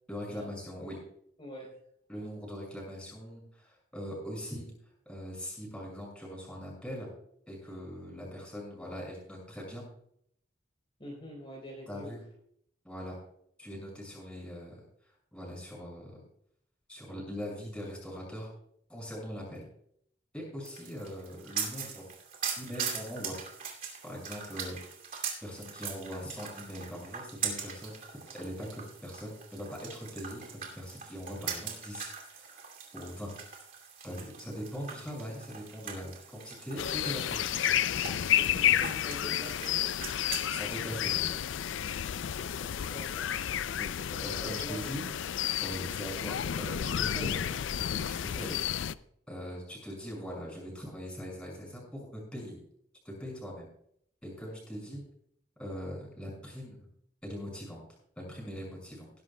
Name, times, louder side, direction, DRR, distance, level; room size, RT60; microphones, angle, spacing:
voice 1, 0.1-1.0 2.1-4.7 5.1-7.1 7.5-9.9 11.9-12.2 12.8-13.2 13.6-14.8 15.3-16.2 16.9-18.5 18.9-19.7 20.3-22.0 22.6-23.5 24.0-24.8 25.4-28.0 28.3-32.6 32.9-33.4 34.0-37.5 38.6-38.7 40.5-41.4 43.8-45.0 45.6-47.5 48.1-48.6 49.3-52.6 53.0-53.7 54.2-55.0 55.6-56.9 57.2-57.8 58.2-59.1, equal, 5° left, -3 dB, 5.7 m, -41 dB
voice 2, 1.4-1.7 2.1-2.2 11.0-12.1 38.4-39.9 42.5-43.3 44.4-45.1 48.4-48.6, equal, 25° left, -5 dB, 3.9 m, -45 dB
sound 1, 20.6-40.5, right 7 dB, 45° right, 2.5 m, -41 dB
sound 2, 36.8-48.9, left 10 dB, 75° left, 0.4 m, -31 dB
20.0 x 11.5 x 2.2 m, 0.68 s
head